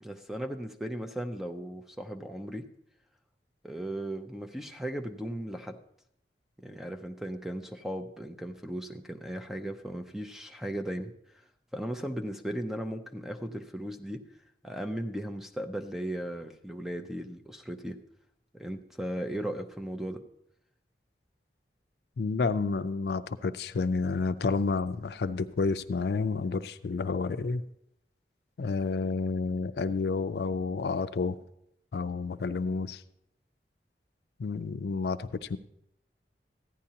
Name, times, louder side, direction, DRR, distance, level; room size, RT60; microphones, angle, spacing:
voice 1, 0.0-2.7 3.6-5.8 6.6-11.1 11.7-14.2 14.6-18.0 18.5-20.2, right 1 dB, ahead, 6 dB, 0.5 m, -36 dB
voice 2, 22.2-27.6 28.6-31.4 31.9-33.0 34.4-35.6, left 4 dB, 65° left, 11 dB, 0.4 m, -30 dB
15.0 x 10.0 x 2.8 m, 0.75 s
head